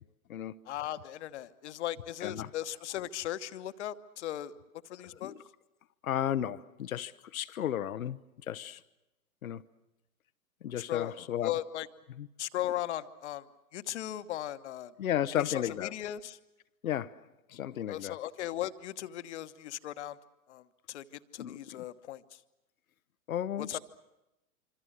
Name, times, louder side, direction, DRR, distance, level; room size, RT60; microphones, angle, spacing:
voice 1, 0.6-4.5 4.8-5.3 10.8-11.9 12.4-13.5 13.7-14.9 15.3-16.4 17.9-20.2 20.5-21.0 21.3-22.4 23.6-23.8, left 13 dB, 50° left, 1.1 m, -37 dB
voice 2, 6.0-8.2 8.5-8.8 9.4-9.6 10.6-11.5 12.2-12.3 15.0-15.9 16.8-17.2 17.5-18.2 21.4-21.8 23.3-23.8, left 10 dB, 70° left, 0.8 m, -33 dB
26.0 x 26.0 x 6.4 m
figure-of-eight pair, 110°, 44 cm